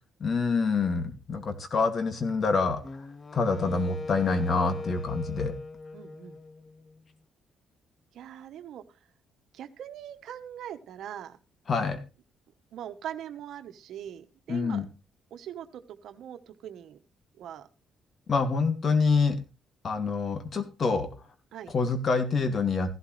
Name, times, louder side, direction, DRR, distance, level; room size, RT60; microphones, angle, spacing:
voice 1, 0.2-2.8 3.3-5.6 11.7-12.0 14.5-14.9 18.3-19.4 19.8-21.1 21.7-22.9, left 4 dB, 45° left, 8 dB, 2.4 m, -26 dB
Wind instrument woodwind instrument, 2.8-7.0, left 3 dB, 30° left, 0.9 m, -40 dB
voice 2, 5.9-6.4 8.1-8.8 9.5-11.4 12.7-14.8 15.3-17.0 17.4-17.7 21.5-21.7, right 10 dB, 75° right, 9 dB, 1.1 m, -41 dB
15.5 x 12.0 x 3.3 m, 0.30 s
cardioid pair, 90°, 0 cm